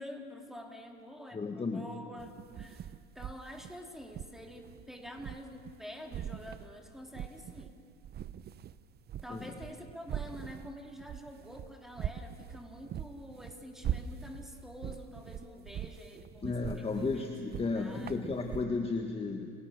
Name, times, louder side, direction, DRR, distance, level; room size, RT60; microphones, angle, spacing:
voice 1, 0.0-2.3 2.6-7.8 9.2-17.2 17.7-18.3, equal, ahead, 2 dB, 3.6 m, -47 dB
voice 2, 1.3-1.9 9.3-9.5 16.4-19.5, left 3 dB, 15° left, 3 dB, 1.7 m, -34 dB
sound 1, 2.2-5.8 6.1-7.7 8.0-18.6, right 9 dB, 30° right, 0.7 m, -42 dB
29.5 x 19.5 x 6.6 m, 2.4 s
hypercardioid pair, 95°, 34 cm